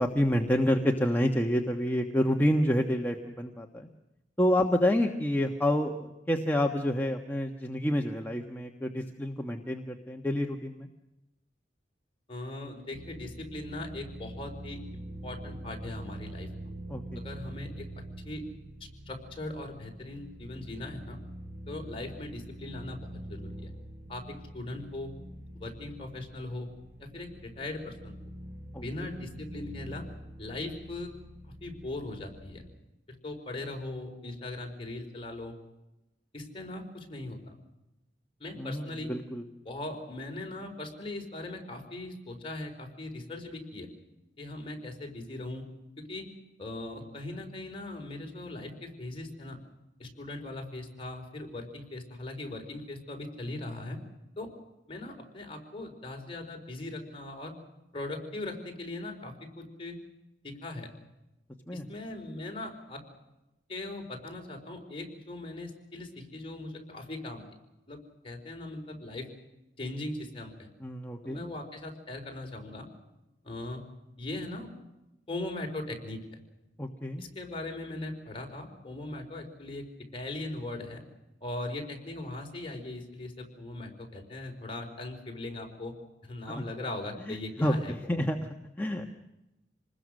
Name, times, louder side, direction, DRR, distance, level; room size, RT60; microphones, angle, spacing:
voice 1, 0.0-3.9 4.4-10.9 16.9-17.2 28.7-28.8 38.6-39.4 61.7-61.9 70.8-71.5 76.8-77.3 86.5-86.6 87.3-88.4 88.8-89.1, equal, 10° left, 2 dB, 1.3 m, -28 dB
voice 2, 12.3-16.5 17.1-17.9 18.2-18.4 19.1-21.2 21.7-23.7 24.1-25.1 25.5-26.7 27.0-28.1 28.7-30.0 30.4-31.1 31.4-32.6 33.1-35.5 36.3-37.5 38.4-39.1 39.6-43.9 44.4-45.6 46.0-46.3 46.6-49.6 50.0-54.0 54.4-54.5 54.9-57.5 57.9-60.0 60.4-60.9 61.7-63.0 63.7-67.5 67.9-68.0 68.2-69.3 69.8-70.7 71.2-72.9 73.4-73.8 74.2-74.7 75.3-76.4 77.2-79.9 80.1-81.0 81.4-85.9 86.2-88.3, left 2 dB, 30° left, 2 dB, 4.6 m, -39 dB
sound 1, 12.9-32.7, right 1 dB, 70° right, 6.5 m, -45 dB
27.0 x 20.5 x 6.5 m, 0.96 s
head